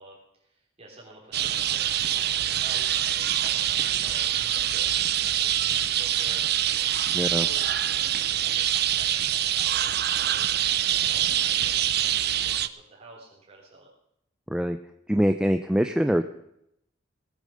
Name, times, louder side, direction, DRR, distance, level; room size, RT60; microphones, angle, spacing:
voice 1, 0.0-7.2 7.5-13.9, right 2 dB, 35° right, -4 dB, 3.7 m, -50 dB
sound 1, 1.3-12.7, right 11 dB, 55° right, 0.7 m, -25 dB
voice 2, 7.1-7.5 14.5-14.8 15.1-16.2, equal, 5° right, 7 dB, 0.5 m, -23 dB
18.5 x 8.7 x 6.5 m, 0.77 s
head